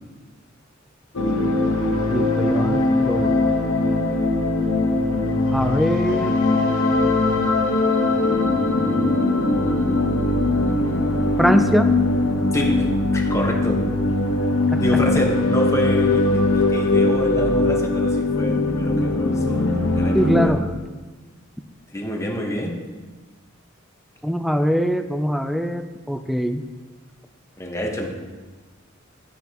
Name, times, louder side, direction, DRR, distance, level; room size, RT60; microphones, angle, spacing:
sound 1, 1.2-20.5, left 2 dB, 90° left, 1.1 m, -20 dB
voice 1, 2.1-3.3 5.5-6.4 11.4-11.9 14.7-14.8 20.1-20.7 24.2-26.6, equal, ahead, 8 dB, 0.4 m, -22 dB
voice 2, 12.5-13.8 14.8-20.5 21.9-22.9 27.6-28.1, left 1 dB, 15° left, 0 dB, 1.2 m, -27 dB
11.5 x 9.4 x 3.0 m, 1.3 s
head